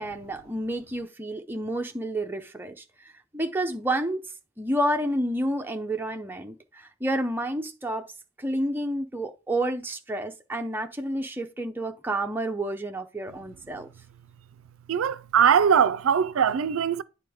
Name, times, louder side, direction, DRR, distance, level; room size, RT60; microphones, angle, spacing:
voice 1, 0.0-4.2 4.6-8.1 8.4-13.9, right 1 dB, 10° right, 0.5 m, -30 dB
voice 2, 14.9-17.0, right 7 dB, 80° right, 0.4 m, -21 dB
9.5 x 4.2 x 3.5 m
head